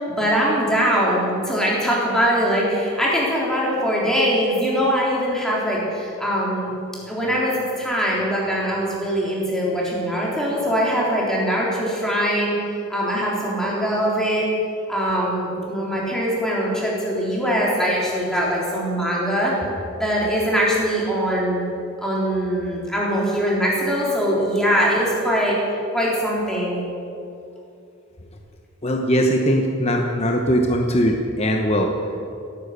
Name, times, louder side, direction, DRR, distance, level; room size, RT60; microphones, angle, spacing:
voice 1, 0.1-6.7 7.1-12.5 12.9-14.5 14.9-19.5 20.0-21.7 22.0-25.6 25.9-26.8, equal, 5° left, -5 dB, 3.7 m, -22 dB
voice 2, 28.8-31.9, equal, 30° left, 2 dB, 1.0 m, -20 dB
17.0 x 10.5 x 8.1 m, 2.6 s
head